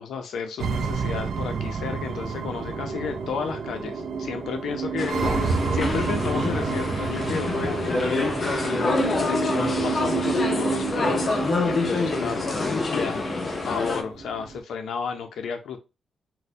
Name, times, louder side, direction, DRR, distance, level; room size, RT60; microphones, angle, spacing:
voice 1, 0.0-8.6 9.2-11.4 11.6-13.3 13.6-15.8, left 6 dB, 90° left, 5 dB, 0.5 m, -33 dB
sound 1, 0.6-14.6, right 5 dB, 55° right, 0.4 m, -30 dB
sound 2, 5.0-14.0, left 3 dB, 30° left, 0.5 m, -26 dB
4.1 x 2.1 x 2.6 m, 0.28 s
wide cardioid pair, 175°, 0 cm